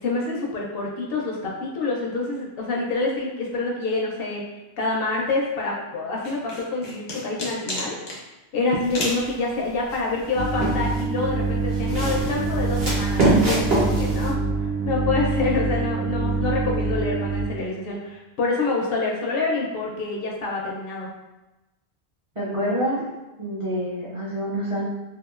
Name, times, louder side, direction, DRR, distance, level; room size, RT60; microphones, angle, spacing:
voice 1, 0.0-4.4 4.8-8.0 8.5-14.4 14.8-21.1, left 3 dB, 70° left, -1 dB, 0.7 m, -27 dB
sound 1, 6.2-8.2 8.9-9.3, left 1 dB, 90° left, 1.0 m, -30 dB
sound 2, 8.8-9.3 9.9-11.1 11.7-14.3, right 2 dB, 65° right, 1.1 m, -24 dB
sound 3, 10.4-17.5, right 3 dB, 85° right, 0.9 m, -25 dB
voice 2, 22.4-23.1 23.4-24.9, equal, 35° right, -8 dB, 0.6 m, -27 dB
2.8 x 2.3 x 2.4 m, 1.0 s
omnidirectional pair, 1.1 m